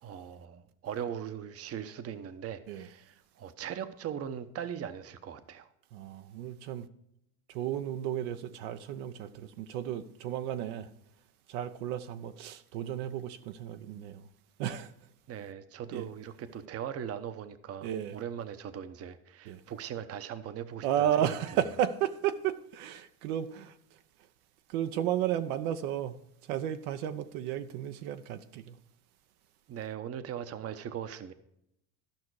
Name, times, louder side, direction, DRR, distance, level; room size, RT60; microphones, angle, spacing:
voice 1, 0.0-5.7 15.3-21.3 29.7-31.3, right 9 dB, 30° right, 0.8 m, -40 dB
voice 2, 5.9-6.9 7.5-10.9 11.5-14.2 14.6-14.9 15.9-16.1 17.8-18.2 19.5-19.6 20.8-23.7 24.7-26.2 26.5-28.7, right 10 dB, 75° right, 0.9 m, -33 dB
13.5 x 5.8 x 4.7 m
supercardioid pair, 100°, 45 cm